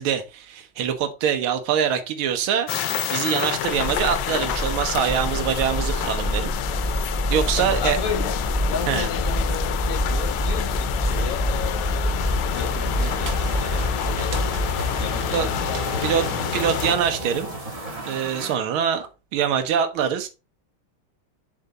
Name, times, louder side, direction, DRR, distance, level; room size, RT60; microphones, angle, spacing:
voice 1, 0.0-2.7 3.1-6.5 6.9-8.0 8.9-9.1 15.3-15.5 16.0-16.2 16.5-17.5 18.1-20.3, right 8 dB, 75° right, 1.7 m, -24 dB
sound 1, 2.7-17.0, left 12 dB, 75° left, 1.1 m, -29 dB
sound 2, 3.6-18.5, left 1 dB, 20° right, 1.2 m, -27 dB
voice 2, 7.6-14.4 15.0-16.6, left 6 dB, 50° left, 1.2 m, -33 dB
sound 3, 12.1-17.6, right 3 dB, 50° right, 1.2 m, -36 dB
7.3 x 3.9 x 4.0 m
omnidirectional pair, 2.4 m